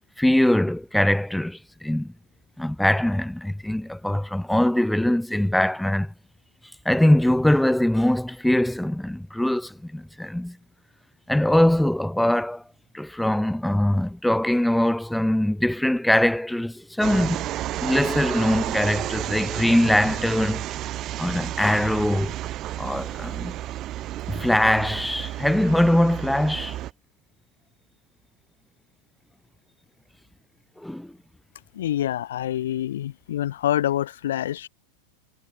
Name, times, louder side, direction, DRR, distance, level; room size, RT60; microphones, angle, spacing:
voice 1, 0.2-2.1 2.6-6.1 6.8-10.6 11.3-12.6 12.9-17.5 17.8-20.6 21.2-22.4 22.8-23.5 24.3-26.8 30.8-31.1, left 1 dB, ahead, 0.7 m, -22 dB
sound 1, 17.0-26.9, right 14 dB, 35° right, 1.5 m, -31 dB
voice 2, 31.8-34.7, left 12 dB, 60° left, 1.7 m, -26 dB
figure-of-eight pair, 90°, 0 cm